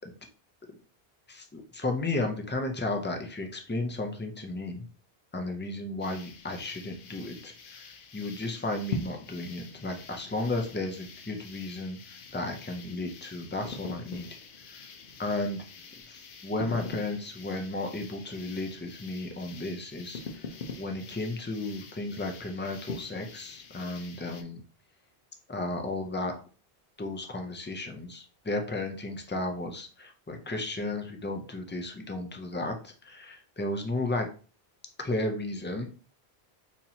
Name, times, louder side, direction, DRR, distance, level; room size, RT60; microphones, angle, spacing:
voice 1, 1.3-4.8 5.3-7.9 8.1-14.3 14.7-14.8 15.2-15.6 16.1-20.5 20.8-24.6 25.5-26.3 27.0-34.3 35.0-35.9, left 2 dB, 20° left, 3 dB, 0.3 m, -34 dB
sound 1, 6.0-24.4, left 4 dB, 60° left, 0.7 m, -44 dB
4.1 x 2.9 x 2.8 m, 0.38 s
omnidirectional pair, 1.1 m